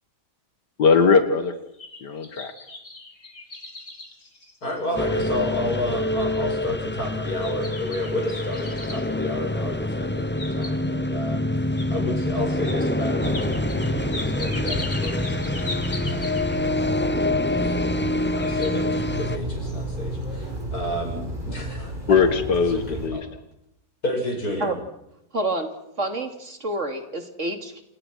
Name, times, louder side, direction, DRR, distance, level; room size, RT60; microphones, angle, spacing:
voice 1, 0.8-1.5 2.0-2.5 22.1-23.2, left 5 dB, 90° left, 8 dB, 2.2 m, -19 dB
sound 1, 1.5-5.1 5.6-5.7 6.2-6.6 7.4-9.1 10.1-11.1 11.8-11.9 12.6-12.8 13.2-16.7 17.7-18.1 18.4-18.7, left 2 dB, 45° left, 4.3 m, -38 dB
voice 2, 4.6-11.4 11.9-16.4 17.5-22.2 22.7-23.2 24.0-24.7, left 1 dB, 65° left, 1 dB, 8.3 m, -31 dB
sound 2, 5.0-19.4, left 1 dB, 10° left, 0.5 m, -26 dB
sound 3, 13.2-23.1, right 1 dB, 30° right, 5.5 m, -33 dB
voice 3, 25.3-25.7 26.0-27.8, right 2 dB, 45° right, 6 dB, 3.0 m, -28 dB
28.5 x 28.5 x 6.4 m, 0.83 s
omnidirectional pair, 1.7 m